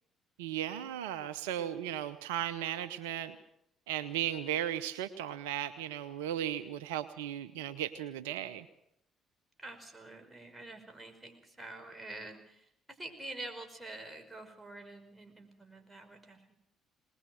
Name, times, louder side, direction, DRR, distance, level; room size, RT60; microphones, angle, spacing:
voice 1, 0.4-3.4 3.9-8.7, right 11 dB, 80° right, 12 dB, 0.8 m, -36 dB
voice 2, 9.6-16.5, right 2 dB, 15° right, 5 dB, 5.4 m, -47 dB
21.0 x 20.5 x 6.4 m, 0.76 s
hypercardioid pair, 50°, 0 cm